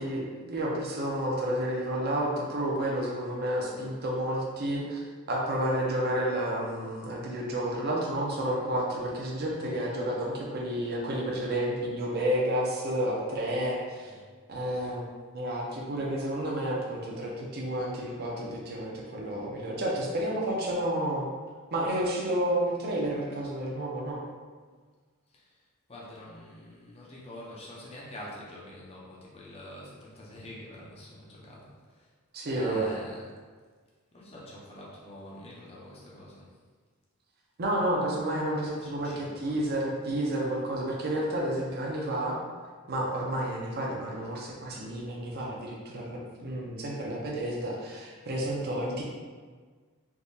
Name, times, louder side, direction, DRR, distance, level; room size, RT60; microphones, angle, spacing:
voice 1, 0.0-14.1 14.5-15.1 15.3-21.3 21.7-24.2 32.3-32.9 37.6-42.4 42.9-49.0, right 1 dB, 45° right, -3 dB, 0.5 m, -30 dB
voice 2, 14.0-14.3 25.3-25.6 25.9-32.1 32.5-33.4 34.1-36.5 38.8-39.6, left 1 dB, 25° left, -5 dB, 0.6 m, -46 dB
3.5 x 2.8 x 2.7 m, 1.5 s
head